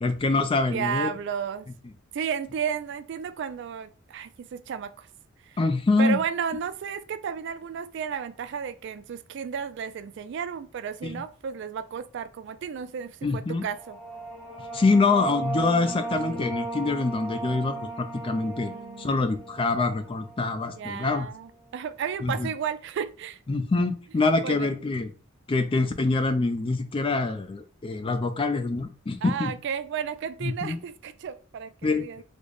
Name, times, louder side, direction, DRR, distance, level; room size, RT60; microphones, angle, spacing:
voice 1, 0.0-1.1 5.6-6.2 11.0-11.2 13.2-13.7 14.7-21.3 22.2-22.5 23.5-25.1 25.5-29.5 30.4-30.8 31.8-32.1, left 3 dB, 25° left, 0.3 m, -25 dB
voice 2, 0.7-1.7 2.1-5.1 5.5-5.6 6.0-14.0 18.7-19.4 20.7-23.4 24.4-24.7 29.2-32.2, right 7 dB, 60° right, 0.3 m, -33 dB
sound 1, 13.6-20.9, right 3 dB, 5° left, 0.8 m, -36 dB
3.2 x 2.1 x 3.8 m
head